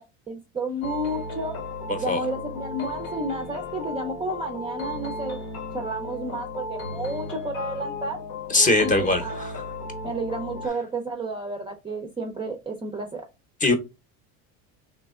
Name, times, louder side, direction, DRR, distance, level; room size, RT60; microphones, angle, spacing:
voice 1, 0.3-1.6 2.0-5.4 5.7-8.2 8.8-9.5 10.0-13.2, right 1 dB, 15° right, 3 dB, 0.4 m, -31 dB
sound 1, 0.8-10.7, left 3 dB, 75° left, 1.0 m, -35 dB
voice 2, 1.9-2.2 8.5-9.6 13.6-13.7, left 2 dB, 20° left, 7 dB, 0.7 m, -21 dB
3.2 x 3.0 x 2.3 m, 0.25 s
supercardioid pair, 120°, 37 cm